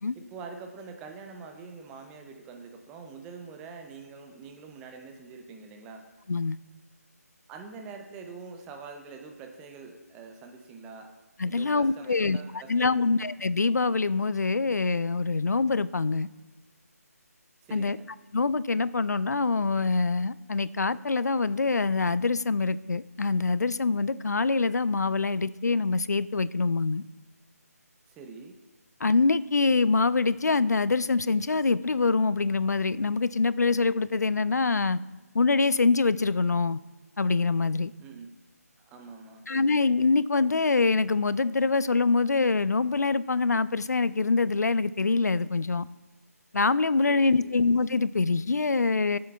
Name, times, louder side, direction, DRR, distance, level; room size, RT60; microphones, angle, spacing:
voice 1, 0.2-6.0 7.5-11.1 11.5-13.2 17.6-18.1 28.1-28.6 38.0-38.3 38.9-39.5 47.1-47.6, right 4 dB, 10° right, 4 dB, 0.5 m, -45 dB
voice 2, 11.4-12.4 12.7-16.3 17.7-18.0 18.3-27.0 29.0-35.0 35.3-36.8 37.2-37.9 39.5-45.9 46.5-49.2, left 4 dB, 80° left, 17 dB, 0.4 m, -25 dB
17.0 x 7.6 x 2.3 m, 1.2 s
figure-of-eight pair, 155°, 9 cm